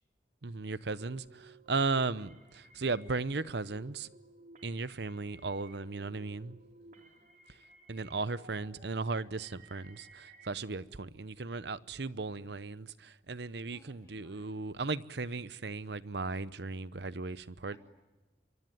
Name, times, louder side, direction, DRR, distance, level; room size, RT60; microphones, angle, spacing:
voice 1, 0.4-4.1 4.6-6.6 7.9-17.8, right 3 dB, 60° right, 0.8 m, -36 dB
sound 1, 1.0-10.5, right 3 dB, 40° right, 3.3 m, -58 dB
voice 2, 6.8-7.2 13.7-14.6 17.7-17.8, left 1 dB, 20° left, 3.2 m, -62 dB
24.5 x 24.5 x 9.2 m
head